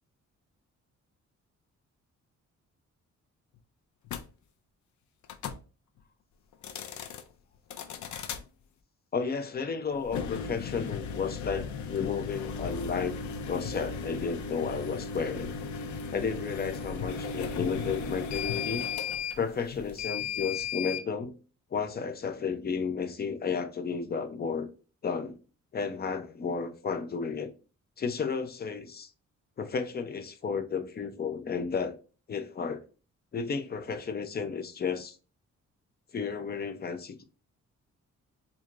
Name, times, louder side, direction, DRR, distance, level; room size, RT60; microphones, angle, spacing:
sound 1, 4.1-4.2 5.2-5.6 6.5-7.2 7.7-8.4 10.0-21.0, left 5 dB, 80° left, 0.6 m, -36 dB
voice 1, 9.1-13.1 13.5-15.5 16.1-18.8 19.4-21.3 21.7-24.7 25.0-25.3 25.7-27.5 28.0-29.1 29.6-32.0 32.3-32.8 33.3-35.2 36.1-37.2, left 5 dB, 35° left, 0.6 m, -32 dB
4.5 x 2.8 x 2.4 m
wide cardioid pair, 155°, 29 cm